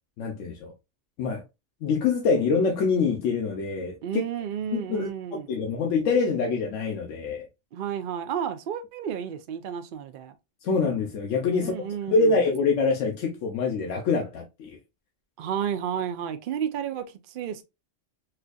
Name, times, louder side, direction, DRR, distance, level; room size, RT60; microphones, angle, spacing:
voice 1, 0.2-0.7 1.2-1.4 1.8-4.2 4.7-5.1 5.5-7.5 10.6-14.8, left 4 dB, 85° left, 1.0 m, -25 dB
voice 2, 4.0-5.5 7.7-10.3 11.5-12.4 15.4-17.6, right 9 dB, 60° right, 0.6 m, -32 dB
4.4 x 2.5 x 2.3 m
omnidirectional pair, 1.3 m